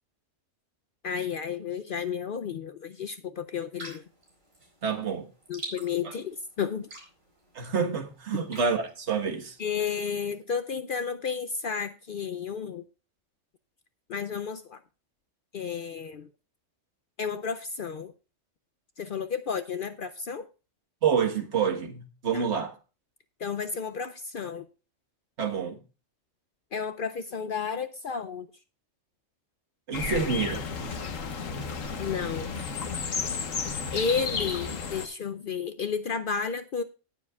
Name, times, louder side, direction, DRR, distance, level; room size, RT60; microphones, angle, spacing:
voice 1, 1.0-4.0 5.5-6.9 9.6-12.8 14.1-14.8 15.5-16.3 17.2-18.1 19.0-20.5 22.3-22.4 23.4-24.7 26.7-28.5 32.0-32.6 33.9-36.8, left 6 dB, 55° left, 0.6 m, -32 dB
sound 1, 3.8-10.1, right 2 dB, 75° right, 4.9 m, -48 dB
voice 2, 4.8-5.3 6.0-6.1 7.5-9.6 21.0-22.8 25.4-25.8 29.9-30.7, right 6 dB, 60° right, 1.7 m, -28 dB
sound 2, 29.9-35.1, left 5 dB, 80° left, 1.6 m, -32 dB
18.5 x 7.3 x 2.3 m
omnidirectional pair, 1.3 m